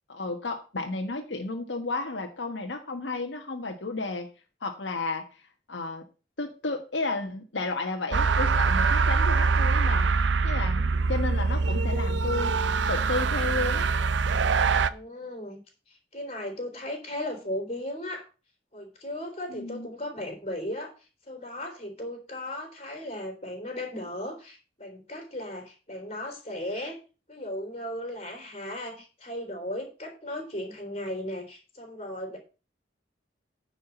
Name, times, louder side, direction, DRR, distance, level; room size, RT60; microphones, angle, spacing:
voice 1, 0.1-4.3 4.6-5.4 5.7-6.0 6.4-10.1 10.4-12.5 12.9-13.9 19.5-19.9, left 3 dB, 85° left, 3 dB, 1.3 m, -32 dB
sound 1, 8.1-14.9, right 4 dB, 85° right, 0.6 m, -24 dB
voice 2, 14.8-15.6 15.9-18.2 18.7-20.9 21.3-27.0 27.3-32.4, left 1 dB, 35° left, 3 dB, 3.5 m, -36 dB
9.9 x 5.0 x 6.8 m, 0.34 s
head